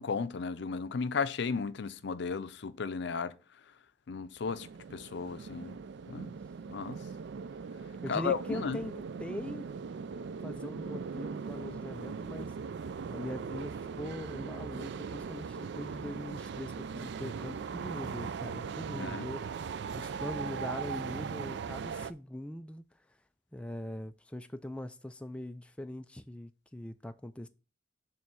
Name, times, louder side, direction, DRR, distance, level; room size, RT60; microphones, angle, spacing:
voice 1, 0.0-3.3 4.1-5.7 6.1-6.3 6.7-7.0 8.1-8.8 18.9-19.3, left 5 dB, 65° left, 0.5 m, -34 dB
sound 1, 4.4-22.1, right 6 dB, 65° right, 0.4 m, -39 dB
voice 2, 8.0-9.7 10.4-12.6 13.1-19.4 19.9-22.8 23.5-27.5, left 1 dB, 5° left, 0.3 m, -41 dB
7.0 x 3.2 x 6.0 m
head